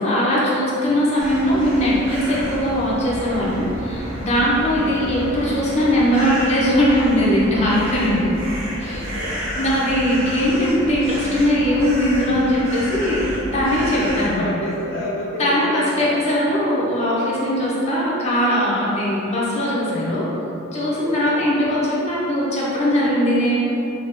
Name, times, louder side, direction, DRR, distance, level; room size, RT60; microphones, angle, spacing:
voice 1, 0.0-8.4 8.8-9.1 9.5-13.2 13.5-14.4 15.4-20.3 20.7-23.6, equal, 30° left, -7 dB, 0.8 m, -20 dB
sound 1, 1.2-14.3, equal, 90° right, 0.9 m, -30 dB
voice 2, 4.3-4.6 8.8-9.4 13.9-16.2 20.9-21.4, left 1 dB, 65° left, -6 dB, 0.5 m, -30 dB
2.9 x 2.8 x 3.6 m, 2.8 s
head